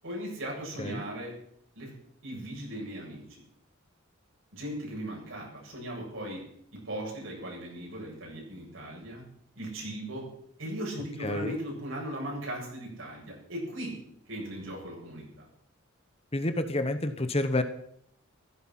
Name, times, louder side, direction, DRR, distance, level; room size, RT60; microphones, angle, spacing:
voice 1, 0.0-1.3 1.7-1.9 2.2-3.4 4.5-6.4 6.7-9.2 9.5-10.3 10.6-14.0 14.3-15.5, right 1 dB, 65° right, -2 dB, 7.8 m, -38 dB
voice 2, 11.2-11.5 16.3-17.6, left 1 dB, 25° left, 9 dB, 1.0 m, -29 dB
15.5 x 15.0 x 5.9 m, 0.70 s
head